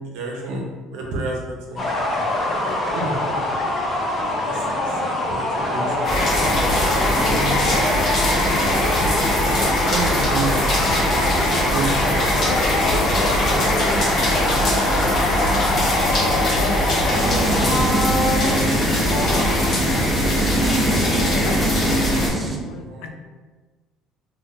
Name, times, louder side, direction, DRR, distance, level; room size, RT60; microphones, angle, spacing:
voice 1, 0.1-0.6 0.9-1.4 1.7-1.8 3.0-3.2 4.4-6.1 6.9-7.7 9.7-11.0 11.4-12.5 22.9-23.1, right 3 dB, 85° right, -1 dB, 0.7 m, -30 dB
sound 1, 1.8-19.9, left 1 dB, 30° left, 0.7 m, -24 dB
sound 2, 6.0-22.3, left 1 dB, 45° left, 1.1 m, -21 dB
voice 2, 7.0-8.7 12.1-15.6 16.5-17.6 17.9-18.5 18.7-19.6 20.6-21.8 22.2-23.1, left 5 dB, 75° left, 5 dB, 0.3 m, -36 dB
sound 3, 17.1-22.6, right 2 dB, 15° right, 0.4 m, -24 dB
2.7 x 2.0 x 3.8 m, 1.4 s
cardioid pair, 120°, 0 cm